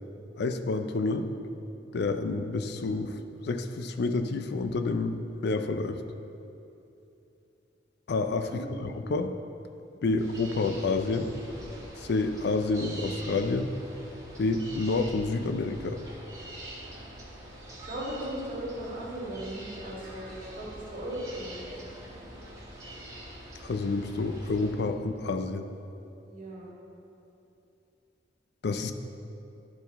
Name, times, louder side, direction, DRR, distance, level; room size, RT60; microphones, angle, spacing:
voice 1, 0.4-1.3 1.9-3.1 3.4-6.0 8.1-9.3 10.0-11.3 12.0-13.7 14.4-16.0 23.6-25.6 28.6-28.9, left 3 dB, 60° left, 8 dB, 0.4 m, -29 dB
voice 2, 8.5-8.9 10.0-10.2 17.8-21.6 26.3-26.7, right 1 dB, 45° right, -6 dB, 1.9 m, -37 dB
sound 1, 10.2-24.7, right 1 dB, 20° right, 1.3 m, -44 dB
11.5 x 4.6 x 4.0 m, 2.8 s
head